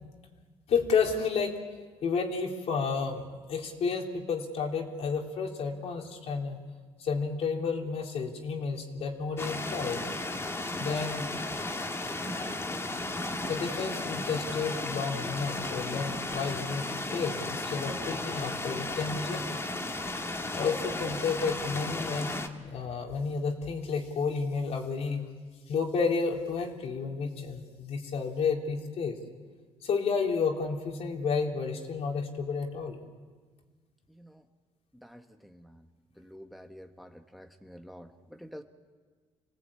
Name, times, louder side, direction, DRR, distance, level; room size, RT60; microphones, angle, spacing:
voice 1, 0.7-1.6 2.0-6.6 7.0-10.0 10.8-11.2 13.5-19.7 20.5-25.2 25.7-29.2 29.8-33.0, left 5 dB, 65° left, 2 dB, 3.3 m, -31 dB
sound 1, 9.4-22.5, left 2 dB, 20° left, 2.0 m, -34 dB
voice 2, 34.1-34.5 34.9-35.9 36.2-38.6, equal, ahead, 6 dB, 1.3 m, -49 dB
27.0 x 18.5 x 8.7 m, 1.5 s
cardioid pair, 90°, 11 cm